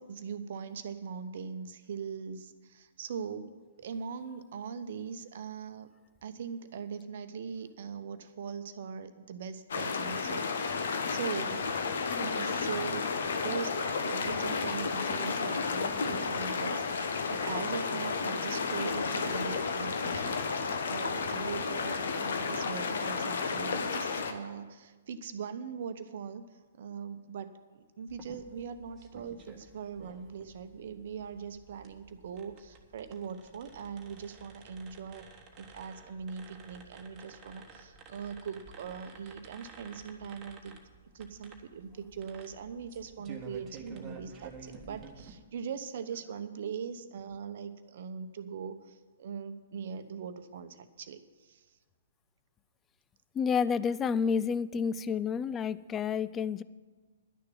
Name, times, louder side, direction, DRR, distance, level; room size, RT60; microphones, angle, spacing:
voice 1, 0.0-5.9 6.2-11.7 12.2-16.8 17.3-35.3 35.6-40.8 41.1-51.6, right 6 dB, 50° right, 11 dB, 0.8 m, -41 dB
sound 1, 9.7-24.3, left 5 dB, 60° left, 1.1 m, -32 dB
sound 2, 28.1-45.3, right 5 dB, 20° right, 1.4 m, -52 dB
voice 2, 53.4-56.6, left 6 dB, 15° left, 16 dB, 0.3 m, -29 dB
11.0 x 6.7 x 9.1 m, 1.4 s
figure-of-eight pair, 120°, 0 cm